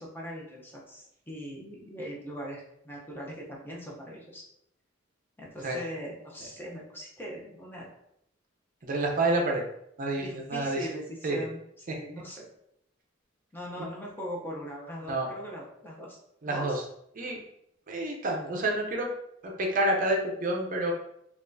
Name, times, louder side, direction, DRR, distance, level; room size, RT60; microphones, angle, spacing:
voice 1, 0.0-4.4 5.4-7.9 10.1-12.5 13.5-16.2 16.5-16.8, equal, 10° left, -3 dB, 0.6 m, -40 dB
voice 2, 8.8-9.6 10.0-10.8 11.2-11.4 15.1-15.3 16.4-16.8 17.2-17.4 17.9-19.1 19.6-20.9, right 2 dB, 45° right, 1 dB, 0.5 m, -28 dB
4.1 x 2.4 x 2.6 m, 0.75 s
head